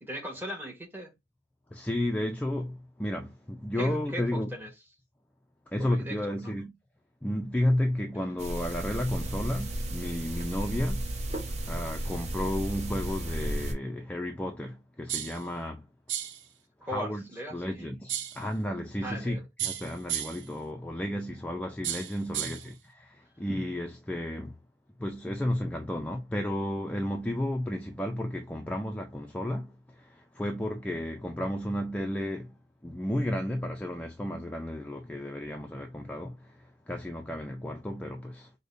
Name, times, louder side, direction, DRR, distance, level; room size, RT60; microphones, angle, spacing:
voice 1, 0.0-1.1 3.8-4.7 5.8-6.6 16.8-17.9 19.0-19.5 22.5-22.6, equal, 10° right, 1.1 m, -39 dB
voice 2, 1.7-4.5 5.7-6.7 7.2-11.1 11.7-15.9 16.8-24.6 25.0-32.6 32.8-38.5, left 1 dB, 10° left, 0.3 m, -33 dB
sound 1, 8.4-13.7, right 1 dB, 35° right, 0.7 m, -34 dB
sound 2, 15.1-15.4 16.1-16.4 18.1-18.4 19.6-20.5 21.8-22.7, right 11 dB, 80° right, 0.5 m, -34 dB
5.0 x 2.1 x 2.5 m
head